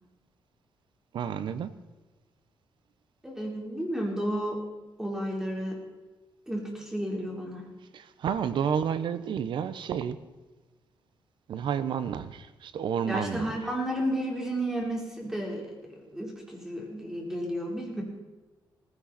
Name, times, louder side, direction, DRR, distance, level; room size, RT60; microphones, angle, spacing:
voice 1, 1.1-1.7 7.9-10.2 11.5-13.5, right 8 dB, 70° right, 1.0 m, -30 dB
voice 2, 3.2-4.7 5.0-5.8 6.5-7.7 13.0-18.0, equal, 5° right, 4.0 m, -32 dB
18.0 x 16.0 x 4.3 m
cardioid pair, 130°, 9 cm